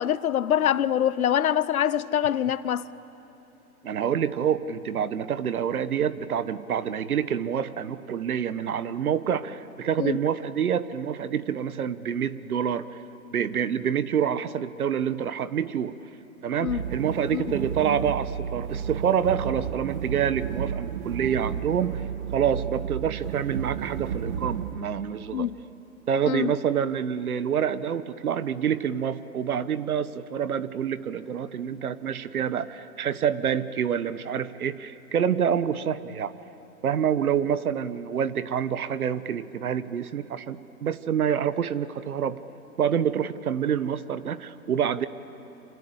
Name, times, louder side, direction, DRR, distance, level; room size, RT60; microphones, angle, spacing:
voice 1, 0.0-2.8 10.0-10.2 16.6-16.8 17.3-17.4 25.3-25.5 26.2-26.5, left 10 dB, 70° left, 1.0 m, -24 dB
voice 2, 3.8-13.0 13.3-15.9 16.4-22.0 22.3-25.5 26.1-36.3 36.8-42.4 42.8-45.1, right 8 dB, 70° right, 1.4 m, -27 dB
sound 1, 16.7-24.8, right 8 dB, 50° right, 1.6 m, -32 dB
28.0 x 26.0 x 8.2 m
hypercardioid pair, 135°, 44 cm